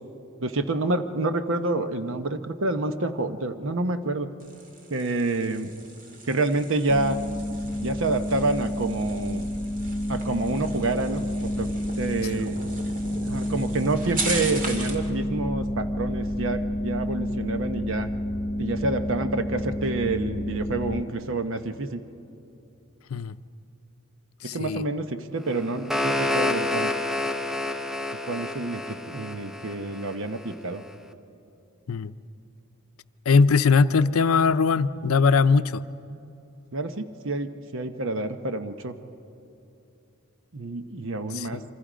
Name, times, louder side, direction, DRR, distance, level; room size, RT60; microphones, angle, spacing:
voice 1, 0.4-4.3 4.9-5.7 6.3-7.2 7.8-9.4 10.1-12.6 13.2-18.1 18.6-22.0 24.5-26.9 28.2-30.8 36.7-39.0 40.5-41.6, right 2 dB, 65° right, 9 dB, 0.9 m, -28 dB
sound 1, 4.4-15.1, right 3 dB, 40° right, 2.0 m, -38 dB
sound 2, 6.9-21.0, equal, 50° left, 1.0 m, -30 dB
voice 2, 24.4-24.8 31.9-32.1 33.3-35.8 41.3-41.6, left 5 dB, 85° left, 14 dB, 0.5 m, -20 dB
sound 3, 25.5-30.5, left 2 dB, ahead, 0.7 m, -29 dB
27.5 x 24.5 x 5.1 m, 2.8 s
head